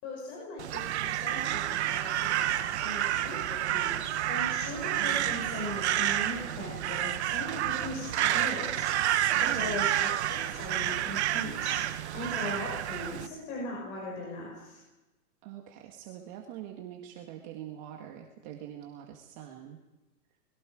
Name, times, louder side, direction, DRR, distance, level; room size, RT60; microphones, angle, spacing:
voice 1, 0.0-11.8 12.1-14.8, left 1 dB, 30° left, -2 dB, 6.0 m, -39 dB
Crow, 0.6-13.3, right 12 dB, 45° right, 1.2 m, -30 dB
voice 2, 5.0-5.6 9.2-9.8 15.4-19.8, right 11 dB, 30° right, 2 dB, 1.8 m, -44 dB
28.5 x 22.0 x 5.0 m, 1.1 s
hypercardioid pair, 160°, 47 cm